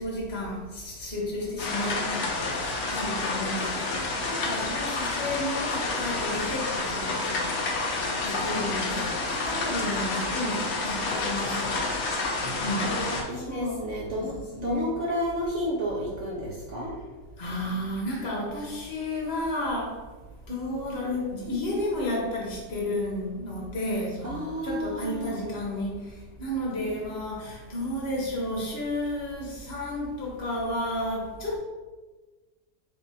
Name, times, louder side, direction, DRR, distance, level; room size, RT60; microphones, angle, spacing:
voice 1, 0.0-11.8 12.4-12.9 13.3-13.9 14.2-14.3 14.6-14.9 17.4-20.0 20.5-31.6, left 1 dB, 40° left, -4 dB, 1.1 m, -32 dB
sound 1, 1.6-13.2, left 3 dB, 90° left, 0.5 m, -29 dB
voice 2, 8.5-9.1 12.8-14.3 14.6-16.9 24.2-25.4 26.8-27.0, equal, 60° right, -4 dB, 0.8 m, -32 dB
3.5 x 3.4 x 4.1 m, 1.3 s
omnidirectional pair, 2.0 m